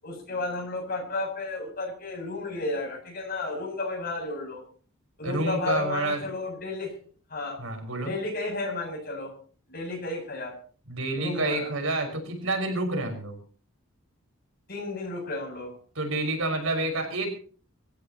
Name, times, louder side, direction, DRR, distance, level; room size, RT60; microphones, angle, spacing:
voice 1, 0.0-4.6 5.2-6.9 7.3-7.6 8.0-9.3 9.7-10.5 11.2-11.7 14.7-15.7, left 2 dB, 50° left, 1 dB, 8.0 m, -32 dB
voice 2, 5.2-6.2 7.6-8.1 10.9-13.4 16.0-17.3, right 2 dB, 80° right, 4 dB, 5.7 m, -28 dB
26.5 x 15.0 x 3.0 m, 0.43 s
head